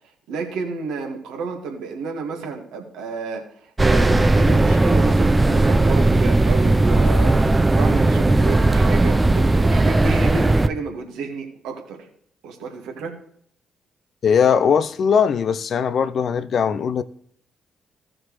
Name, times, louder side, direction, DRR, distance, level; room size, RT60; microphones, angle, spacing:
voice 1, 0.3-12.1 12.4-13.1, right 4 dB, 70° right, 2.2 m, -31 dB
sound 1, 3.8-10.7, right 2 dB, 20° right, 0.7 m, -17 dB
voice 2, 14.2-17.0, left 7 dB, 55° left, 0.6 m, -19 dB
17.0 x 6.2 x 3.2 m
figure-of-eight pair, 40°, 0 cm